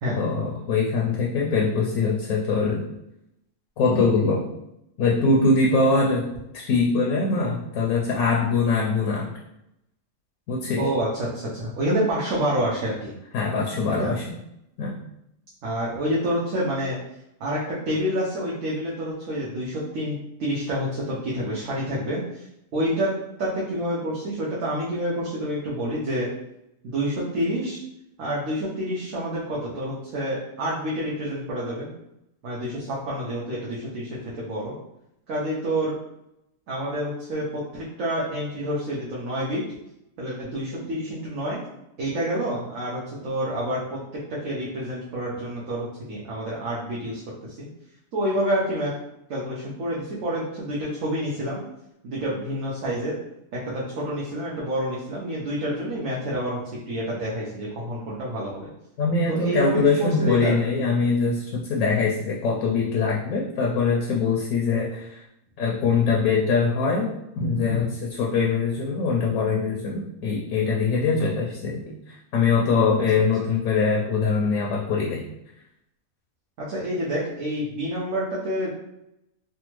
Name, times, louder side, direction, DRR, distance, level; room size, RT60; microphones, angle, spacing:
voice 1, 0.2-2.8 3.8-4.4 5.0-9.3 10.5-10.9 13.3-14.4 14.8-14.9 59.0-65.2 65.6-75.2, left 4 dB, 75° left, -2 dB, 1.0 m, -23 dB
voice 2, 10.8-13.1 13.9-14.1 15.6-17.0 17.4-22.5 22.7-23.1 23.4-26.3 26.8-27.8 28.2-31.9 32.4-34.8 35.3-35.9 36.7-39.6 40.2-41.6 42.0-44.0 44.3-47.2 47.5-47.7 48.1-48.9 49.3-51.6 52.0-53.2 53.5-56.6 56.9-58.7 59.3-60.6 72.6-73.0 76.6-78.7, equal, 70° right, -6 dB, 1.1 m, -28 dB
3.3 x 2.1 x 3.0 m, 0.83 s
omnidirectional pair, 1.5 m